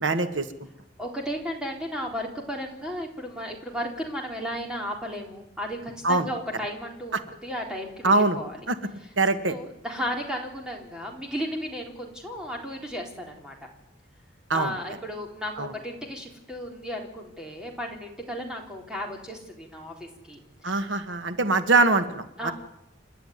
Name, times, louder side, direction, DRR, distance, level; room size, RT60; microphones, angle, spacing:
voice 1, 0.0-0.5 6.0-6.3 7.1-7.2 8.0-8.4 8.7-8.8 9.2-9.5 14.5-14.7 15.6-15.7 20.6-22.5, right 3 dB, 90° right, 9 dB, 1.6 m, -23 dB
voice 2, 1.0-8.6 9.5-13.6 14.5-20.8 22.4-22.5, equal, 5° right, 0 dB, 3.8 m, -34 dB
28.5 x 11.5 x 9.5 m, 0.83 s
head